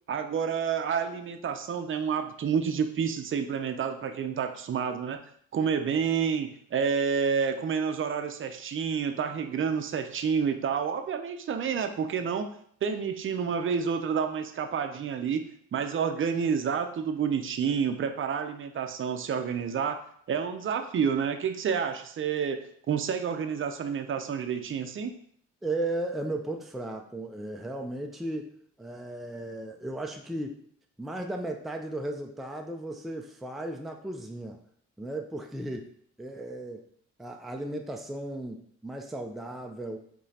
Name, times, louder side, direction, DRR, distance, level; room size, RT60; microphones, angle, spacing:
voice 1, 0.1-5.2 5.5-12.5 12.8-15.4 15.7-20.0 20.3-22.6 22.9-25.1, right 6 dB, 40° right, 7 dB, 0.6 m, -29 dB
voice 2, 25.6-28.5 28.8-30.6 31.0-34.6 35.0-35.9 36.2-36.8 37.2-40.0, right 1 dB, ahead, 2 dB, 0.5 m, -35 dB
4.9 x 3.7 x 2.8 m, 0.62 s
cardioid pair, 90°, 30 cm